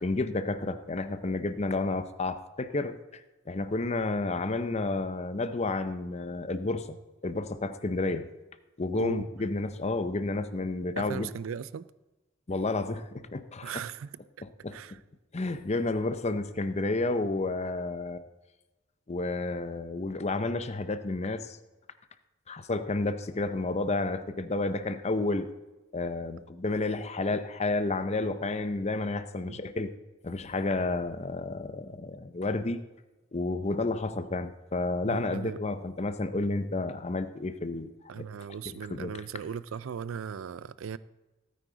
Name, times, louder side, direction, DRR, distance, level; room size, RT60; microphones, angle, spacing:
voice 1, 0.0-3.2 3.5-7.0 7.2-8.3 8.8-11.3 12.5-13.7 14.4-14.8 15.3-18.2 19.1-21.6 22.5-25.5 25.9-29.9 30.2-32.8 33.3-37.9 38.2-38.3 38.7-39.2, left 2 dB, 35° left, 0.7 m, -31 dB
voice 2, 8.9-9.3 11.0-11.9 13.6-14.2 14.7-15.0 29.5-29.6 35.0-35.6 38.1-41.0, right 7 dB, 80° right, 0.4 m, -38 dB
16.5 x 9.4 x 3.9 m
head